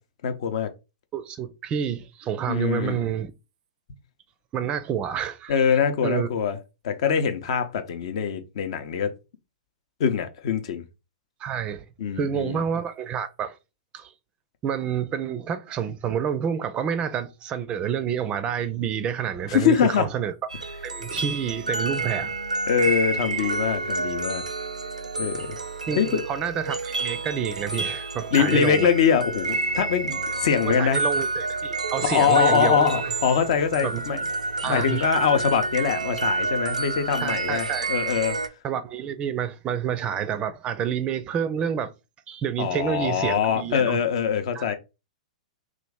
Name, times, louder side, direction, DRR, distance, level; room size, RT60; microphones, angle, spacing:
voice 1, 0.2-0.7 2.5-3.0 5.5-6.6 6.8-9.1 10.0-10.8 12.0-12.6 19.5-20.1 22.7-24.4 25.2-25.6 26.0-26.2 28.3-31.0 32.1-34.2 34.6-38.4 42.6-44.7, left 7 dB, 55° left, 0.6 m, -23 dB
voice 2, 1.1-3.3 4.5-6.3 7.5-7.6 11.4-11.8 12.2-13.6 13.9-14.1 14.6-20.3 20.8-22.3 25.9-28.9 30.6-33.1 33.8-34.2 34.6-35.1 37.2-37.9 38.6-41.9 42.3-44.0 44.5-44.6, right 8 dB, 30° right, 0.4 m, -28 dB
sound 1, 20.5-38.5, right 3 dB, 90° right, 0.4 m, -29 dB
3.0 x 2.4 x 3.5 m
figure-of-eight pair, 105°, 4 cm